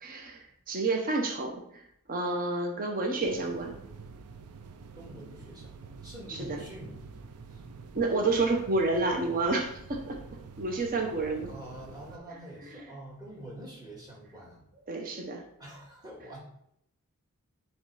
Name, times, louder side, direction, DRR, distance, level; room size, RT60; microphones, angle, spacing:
voice 1, 0.0-1.8 2.1-3.8 6.3-6.6 7.9-10.2 10.6-11.5 12.1-12.2 12.6-12.9 14.9-15.4, right 3 dB, 40° right, 2 dB, 0.9 m, -30 dB
sound 1, 3.2-12.2, right 5 dB, 80° right, 0.6 m, -47 dB
voice 2, 4.9-7.0 7.5-7.6 11.5-14.6 15.6-16.4, right 1 dB, 20° right, -5 dB, 2.2 m, -46 dB
7.1 x 3.2 x 4.9 m, 0.74 s
head